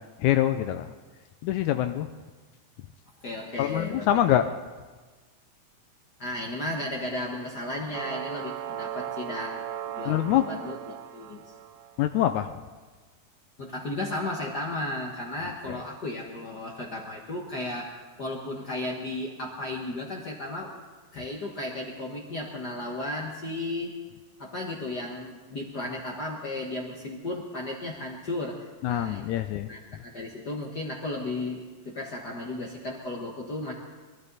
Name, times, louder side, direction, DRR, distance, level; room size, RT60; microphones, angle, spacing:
voice 1, 0.2-0.9 1.4-2.1 3.6-4.5 10.1-10.5 12.0-12.5 28.8-29.7, left 12 dB, 80° left, 9 dB, 1.8 m, -24 dB
voice 2, 3.2-4.3 6.2-11.4 13.6-17.9 18.2-20.8 21.1-23.9 24.4-29.3 29.7-33.7, left 2 dB, 50° left, -1 dB, 1.3 m, -34 dB
sound 1, 7.9-12.0, right 11 dB, 80° right, 2.2 m, -37 dB
23.5 x 13.0 x 4.1 m, 1.3 s
omnidirectional pair, 3.7 m